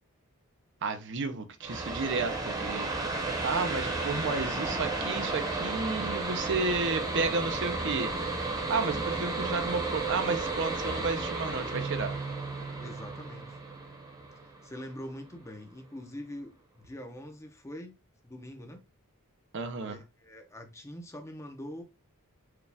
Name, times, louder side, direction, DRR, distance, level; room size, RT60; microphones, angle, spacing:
voice 1, 0.8-2.9 3.4-8.1 8.7-12.1 19.5-20.0, right 4 dB, 55° right, 0.6 m, -32 dB
sound 1, 1.6-15.0, right 3 dB, 15° right, 0.9 m, -33 dB
Keyboard (musical), 11.7-14.6, right 4 dB, 50° left, 1.0 m, -41 dB
voice 2, 12.8-13.6 14.4-18.0 18.2-18.8 19.8-21.8, left 1 dB, 15° left, 0.6 m, -44 dB
4.7 x 2.4 x 3.3 m
head